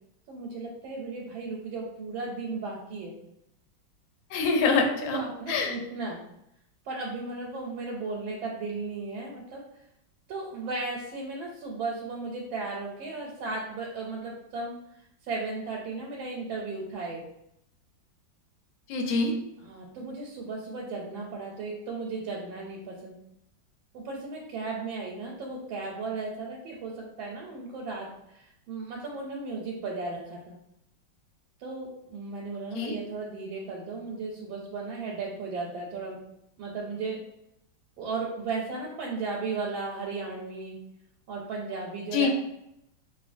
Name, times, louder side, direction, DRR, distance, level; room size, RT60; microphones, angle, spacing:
voice 1, 0.3-3.1 5.0-6.2 6.8-9.6 10.3-14.8 15.2-17.2 19.6-23.2 23.9-30.5 31.6-36.2 36.6-37.2 38.0-40.8 41.3-42.3, right 3 dB, 90° right, -2 dB, 1.4 m, -35 dB
voice 2, 4.3-5.2 5.5-5.7 18.9-19.3 32.7-32.9 42.1-42.3, left 4 dB, 80° left, 2 dB, 1.3 m, -25 dB
2.9 x 2.6 x 2.5 m, 0.80 s
omnidirectional pair, 2.1 m